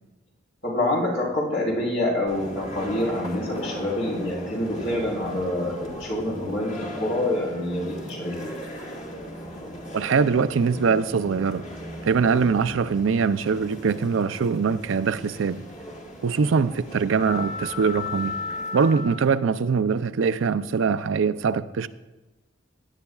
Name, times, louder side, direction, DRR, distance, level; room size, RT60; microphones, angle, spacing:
voice 1, 0.6-8.5, left 1 dB, 70° left, 4.0 m, -26 dB
sound 1, 2.3-19.4, left 1 dB, 40° left, 1.9 m, -37 dB
voice 2, 9.9-11.6 12.0-15.6 16.2-18.4 18.7-21.9, right 5 dB, 80° right, 0.4 m, -23 dB
16.5 x 10.0 x 2.3 m
head